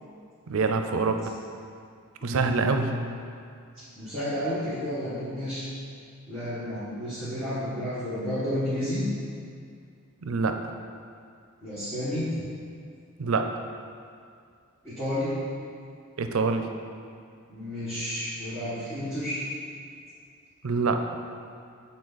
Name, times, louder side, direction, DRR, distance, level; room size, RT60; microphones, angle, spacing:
voice 1, 0.5-1.2 2.2-2.9 10.2-10.6 13.2-13.5 16.2-16.6 20.6-21.0, right 4 dB, 75° right, 6 dB, 0.5 m, -25 dB
voice 2, 2.2-3.0 4.0-5.7 6.3-9.0 11.6-12.3 14.8-15.4 17.5-19.4, equal, 10° left, -14 dB, 1.7 m, -31 dB
7.6 x 4.1 x 4.0 m, 2.3 s
head